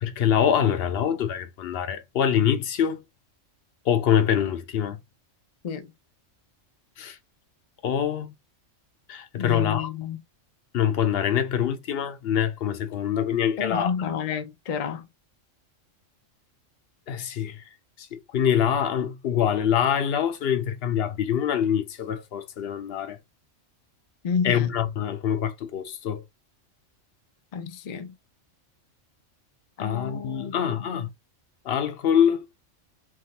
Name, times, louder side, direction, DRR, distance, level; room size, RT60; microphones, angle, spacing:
voice 1, 0.0-3.0 3.9-5.0 7.0-7.2 7.8-8.3 9.1-9.9 10.7-13.9 17.1-17.6 18.0-23.2 24.4-26.2 29.8-31.1 31.6-32.5, left 9 dB, 65° left, 0.7 m, -25 dB
voice 2, 9.4-10.2 13.6-15.1 24.2-24.7 27.5-28.2 29.8-30.6, left 7 dB, 85° left, 0.3 m, -30 dB
3.4 x 2.3 x 2.7 m
omnidirectional pair, 1.3 m